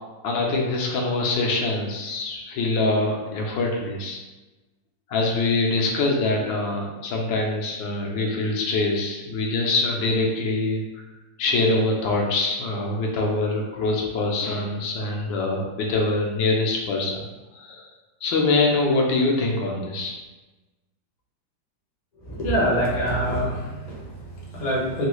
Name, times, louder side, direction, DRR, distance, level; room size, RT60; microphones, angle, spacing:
voice 1, 0.2-4.2 5.1-10.8 11.4-17.1 17.6-17.9 18.2-20.2, left 2 dB, 85° left, -1 dB, 1.4 m, -24 dB
voice 2, 22.2-25.1, equal, 45° left, -5 dB, 0.6 m, -25 dB
3.6 x 2.3 x 3.0 m, 1.1 s
omnidirectional pair, 2.0 m